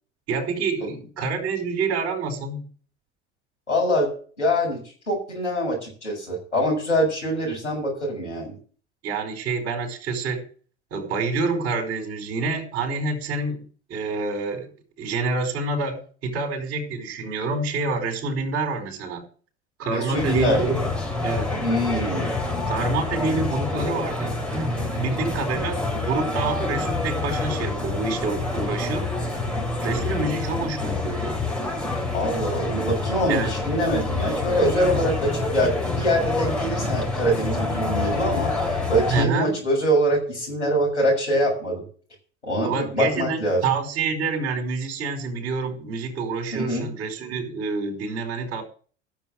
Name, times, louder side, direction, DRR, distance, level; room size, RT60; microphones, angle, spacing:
voice 1, 0.3-2.7 9.0-10.4 10.9-14.7 15.0-19.2 19.8-20.8 21.2-21.5 22.6-29.1 29.8-31.5 33.3-33.5 34.9-35.1 39.1-39.5 42.6-48.6, right 3 dB, 45° right, 4.6 m, -27 dB
voice 2, 3.7-4.1 4.4-4.8 5.1-8.6 19.9-20.6 21.6-22.3 23.2-23.4 32.1-38.5 38.9-41.8 42.4-43.6 46.5-46.9, equal, 80° left, 6.8 m, -24 dB
sound 1, 20.1-39.3, left 3 dB, 5° left, 5.8 m, -27 dB
15.0 x 7.2 x 6.4 m
figure-of-eight pair, 70°, 34 cm